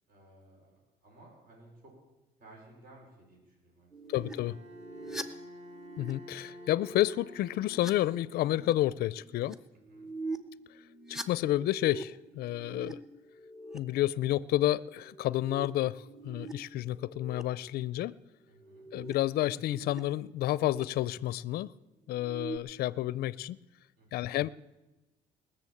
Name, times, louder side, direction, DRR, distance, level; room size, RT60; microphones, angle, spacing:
voice 1, 0.1-1.9 2.4-4.4 4.9-5.2 9.9-10.1 18.5-18.9 24.0-24.3, right 2 dB, 55° right, -2 dB, 5.3 m, -57 dB
sound 1, 3.9-6.1 6.5-7.0 7.5-7.9 8.3-8.7 9.1-9.5 9.8-10.4 10.8-12.9 13.2-13.8 15.0-16.5 16.9-17.4 18.5-20.0 20.3-20.8 22.1-22.6, right 2 dB, 5° right, 0.9 m, -43 dB
voice 2, 4.1-4.6 6.0-9.6 11.1-13.0 13.7-18.2 18.9-21.7 22.1-23.6 24.1-24.5, left 14 dB, 65° left, 21 dB, 0.4 m, -30 dB
Bowed string instrument, 4.1-8.7, equal, 35° right, 2.3 m, -50 dB
20.0 x 6.9 x 8.5 m, 1.1 s
cardioid pair, 110°, 17 cm